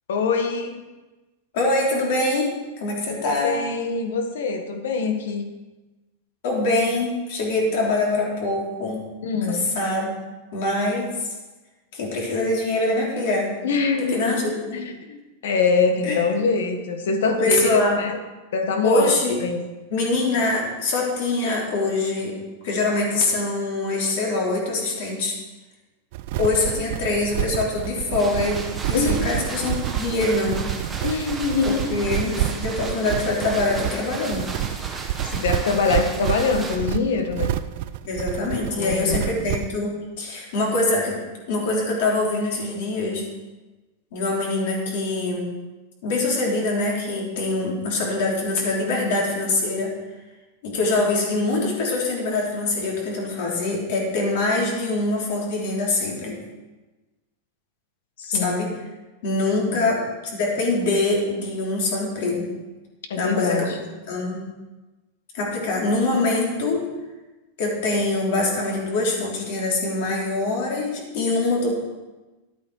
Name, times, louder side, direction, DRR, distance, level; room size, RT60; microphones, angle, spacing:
voice 1, 0.1-0.8 3.2-5.5 9.2-9.7 13.6-14.4 14.7-18.2 18.5-19.7 28.9-29.4 31.0-31.9 35.2-37.5 38.7-39.3 58.2-58.5 59.7-59.8 63.1-63.8, left 4 dB, 85° left, 6 dB, 1.6 m, -24 dB
voice 2, 1.5-2.5 2.8-3.6 6.4-9.1 9.5-10.1 10.5-11.3 11.9-13.5 14.0-14.8 16.0-16.2 17.3-18.0 18.8-19.4 19.9-22.4 22.6-25.3 26.4-30.6 31.6-34.5 38.0-41.2 41.5-43.2 44.1-45.5 46.0-49.9 50.6-56.4 58.3-58.7 59.2-60.1 60.4-62.5 63.2-63.7 64.1-64.5 65.3-66.9 67.6-71.7, left 2 dB, 55° left, -2 dB, 3.4 m, -24 dB
sound 1, 26.1-39.8, right 13 dB, 50° right, 0.4 m, -29 dB
sound 2, 28.2-36.8, right 3 dB, 10° right, 1.2 m, -35 dB
11.5 x 8.6 x 4.8 m, 1.2 s
supercardioid pair, 165°, 0 cm